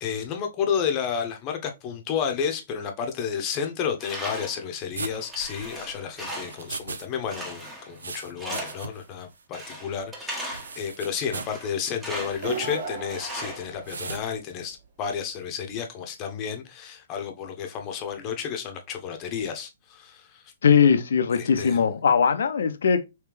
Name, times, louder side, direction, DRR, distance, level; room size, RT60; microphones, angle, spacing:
voice 1, 0.0-20.4 21.4-21.8, left 7 dB, 30° left, 0.9 m, -31 dB
Tools, 4.0-4.7 5.1-6.7 7.3-8.0 8.4-8.9 9.5-10.8 11.3-12.5 13.1-14.2, right 1 dB, 10° right, 1.2 m, -38 dB
sound 1, 4.9-7.1 7.3-9.1 9.4-9.5 10.5-11.6 12.1-12.4 13.8-14.3, right 4 dB, 80° right, 0.4 m, -38 dB
sound 2, 12.3-14.3, right 5 dB, 60° right, 1.1 m, -36 dB
voice 2, 20.6-23.0, left 6 dB, 70° left, 0.5 m, -20 dB
3.4 x 3.2 x 3.1 m
hypercardioid pair, 125°, 0 cm